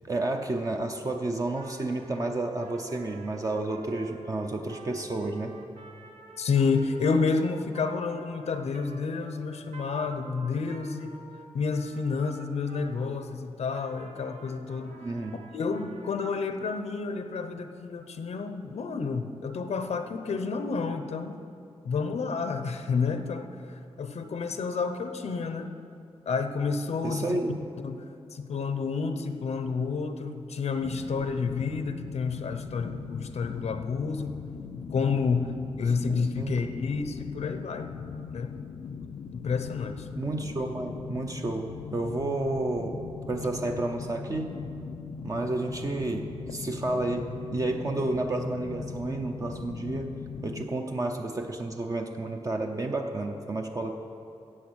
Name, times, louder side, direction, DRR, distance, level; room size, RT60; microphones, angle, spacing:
voice 1, 0.1-5.6 15.0-15.4 27.0-27.6 36.1-36.6 40.2-43.0 43.3-44.6 45.2-50.1 50.4-54.0, right 2 dB, 30° right, 3 dB, 0.7 m, -31 dB
Trumpet, 1.5-13.2 13.7-16.7, right 3 dB, 90° right, 1.3 m, -50 dB
voice 2, 6.4-11.2 11.5-14.9 15.3-21.4 21.8-25.7 26.3-27.3 27.8-28.0 28.3-34.4 34.9-37.9 38.3-38.5 39.3-40.1, left 4 dB, 80° left, 8 dB, 0.8 m, -30 dB
sound 1, 30.8-50.7, left 6 dB, 60° left, 0.5 m, -40 dB
15.0 x 8.2 x 6.3 m, 2.6 s
wide cardioid pair, 170°, 11 cm